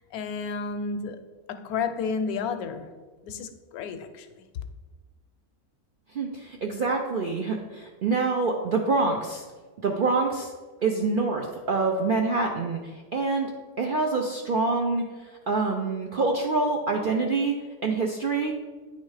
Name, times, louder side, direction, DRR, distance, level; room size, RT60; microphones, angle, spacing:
voice 1, 0.1-1.2 1.5-2.9 3.2-4.6, left 5 dB, 80° left, 1.1 m, -32 dB
voice 2, 6.1-9.4 9.8-10.5 10.8-13.5 13.8-18.6, right 3 dB, 75° right, 0.4 m, -26 dB
9.2 x 3.1 x 4.8 m
omnidirectional pair, 1.6 m